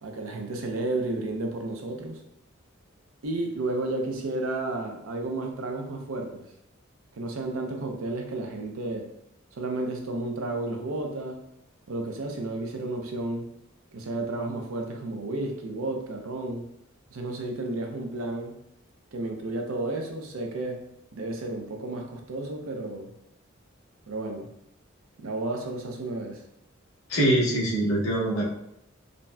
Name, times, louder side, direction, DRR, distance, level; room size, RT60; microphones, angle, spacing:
voice 1, 0.0-2.2 3.2-6.4 7.2-9.1 9.6-11.4 11.9-13.5 13.9-16.7 17.1-18.6 19.1-20.8 21.1-23.1 24.1-24.5 25.2-26.4, right 2 dB, 85° right, 3 dB, 0.5 m, -32 dB
voice 2, 27.1-28.4, right 1 dB, 85° left, -3 dB, 0.9 m, -23 dB
3.9 x 2.1 x 2.2 m, 0.78 s
head